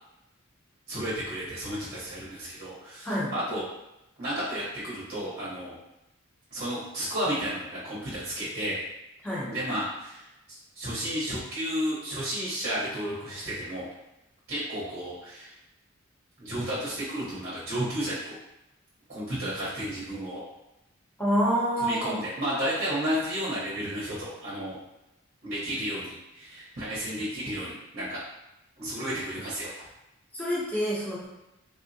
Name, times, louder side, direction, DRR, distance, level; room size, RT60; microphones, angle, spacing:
voice 1, 0.9-3.6 4.2-5.8 6.5-8.8 9.5-13.8 14.5-15.5 16.4-18.3 19.1-20.4 21.8-24.8 25.4-28.2 28.8-29.9, equal, 50° right, -8 dB, 0.8 m, -32 dB
voice 2, 21.2-22.2 30.3-31.3, equal, 5° left, -7 dB, 0.7 m, -27 dB
3.5 x 2.1 x 2.6 m, 0.92 s
head